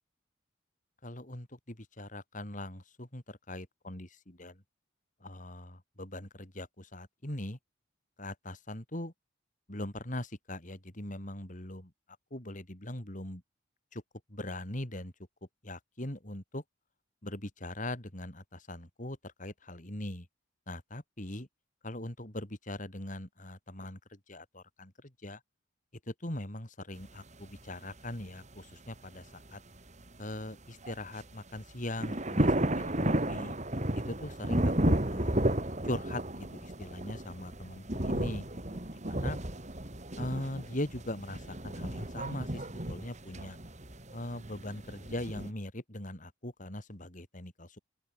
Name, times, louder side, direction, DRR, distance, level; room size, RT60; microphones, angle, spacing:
voice 1, 1.0-4.6 5.2-7.6 8.2-9.1 9.7-11.9 12.3-13.4 13.9-14.0 14.3-15.1 15.6-16.6 17.2-20.3 20.7-21.5 21.8-25.4 26.1-29.6 30.2-33.5 33.9-35.3 35.8-39.4 40.2-43.6 44.1-47.8, left 1 dB, 40° left, 3.8 m, -41 dB
sound 1, 27.0-27.1 27.6-27.7 28.2-28.3 28.5-28.6 29.8-30.0 30.8-31.2 31.6-31.7 32.0-45.5, right 1 dB, 35° right, 2.9 m, -33 dB
open air
head